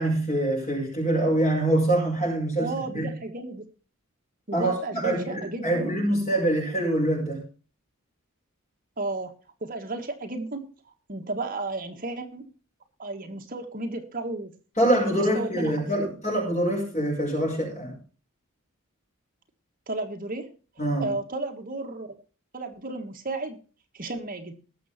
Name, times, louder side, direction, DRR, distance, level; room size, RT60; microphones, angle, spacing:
voice 1, 0.0-3.1 4.5-7.4 14.8-18.0 20.8-21.1, right 1 dB, 35° left, -3 dB, 5.7 m, -25 dB
voice 2, 2.6-3.7 4.5-5.9 9.0-9.3 9.6-10.7 11.1-12.4 13.0-14.5 15.1-16.1 19.9-22.1 22.5-23.6 23.9-24.5, right 2 dB, 40° right, 5 dB, 1.6 m, -33 dB
19.5 x 7.1 x 4.3 m, 0.36 s
head